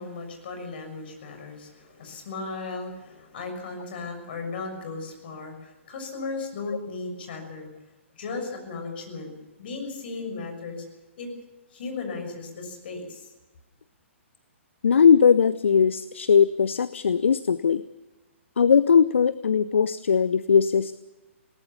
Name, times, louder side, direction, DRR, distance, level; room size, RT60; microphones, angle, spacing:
voice 1, 0.0-7.7 8.2-9.3 9.6-10.8 11.2-11.3 11.7-13.3, left 3 dB, 50° left, 4 dB, 6.4 m, -36 dB
voice 2, 14.8-17.8 18.6-21.0, left 6 dB, 65° left, 17 dB, 0.6 m, -19 dB
21.0 x 18.5 x 7.0 m, 1.1 s
figure-of-eight pair, 120°, 7 cm